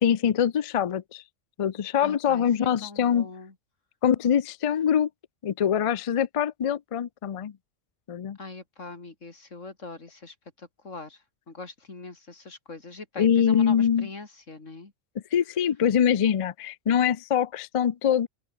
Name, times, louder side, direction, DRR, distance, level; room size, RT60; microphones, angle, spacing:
voice 1, 0.0-1.2 1.6-3.3 4.0-5.1 5.4-7.5 8.1-8.4 13.2-14.1 15.3-18.3, left 8 dB, 55° left, 0.3 m, -24 dB
voice 2, 2.0-2.5 2.8-3.5 8.4-11.2 11.5-14.9, left 3 dB, 90° left, 3.7 m, -42 dB
open air
omnidirectional pair, 1.3 m